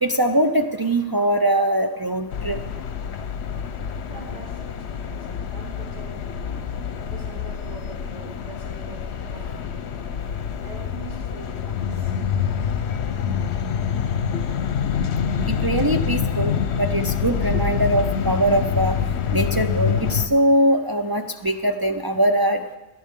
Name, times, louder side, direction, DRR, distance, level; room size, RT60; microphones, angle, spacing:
voice 1, 0.0-2.6 15.4-19.0 19.3-22.6, right 1 dB, 35° right, 5 dB, 0.3 m, -21 dB
sound 1, 2.3-20.3, left 7 dB, 70° left, 1.0 m, -26 dB
voice 2, 4.1-6.7 7.1-9.9 10.6-12.3, right 2 dB, 80° right, -3 dB, 2.7 m, -43 dB
19.5 x 11.0 x 3.6 m, 1.1 s
omnidirectional pair, 1.2 m